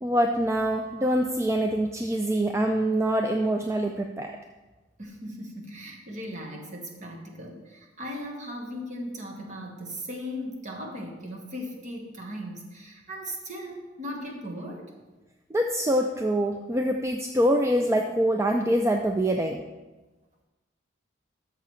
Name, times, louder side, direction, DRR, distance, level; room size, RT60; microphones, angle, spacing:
voice 1, 0.0-4.3 15.5-19.6, right 1 dB, 15° right, 3 dB, 0.4 m, -25 dB
voice 2, 5.0-14.9, equal, 40° right, 0 dB, 1.3 m, -38 dB
13.0 x 6.7 x 3.2 m, 1.2 s
head